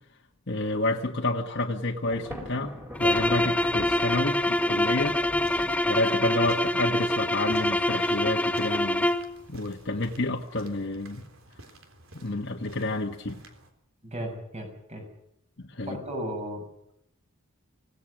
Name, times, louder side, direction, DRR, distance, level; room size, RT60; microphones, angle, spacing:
voice 1, 0.5-2.7 3.0-5.2 5.9-9.1 9.5-11.2 12.1-13.4 15.6-16.0, left 2 dB, 50° left, 1 dB, 1.5 m, -29 dB
Thunder, 2.1-6.6, equal, 10° right, 4.7 m, -41 dB
sound 1, 2.9-9.3, left 1 dB, 5° left, 0.7 m, -25 dB
sound 2, 5.4-13.7, right 2 dB, 65° right, 3.6 m, -51 dB
voice 2, 14.0-15.0 15.9-16.6, equal, 30° right, 4 dB, 6.0 m, -35 dB
25.0 x 18.0 x 6.4 m, 0.76 s
head